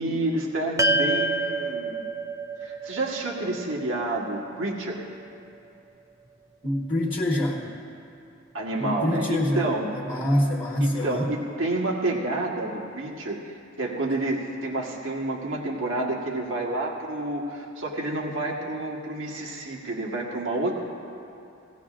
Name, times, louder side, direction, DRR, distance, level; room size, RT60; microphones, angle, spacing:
voice 1, 0.0-2.0 2.6-5.0 8.5-9.8 10.8-20.8, right 2 dB, 70° right, -2 dB, 1.4 m, -29 dB
sound 1, 0.8-5.3, right 2 dB, 15° right, 0.4 m, -28 dB
voice 2, 6.6-7.7 8.8-9.7 9.9-11.3, left 1 dB, 25° left, -5 dB, 1.1 m, -25 dB
17.0 x 17.0 x 2.5 m, 2.6 s
head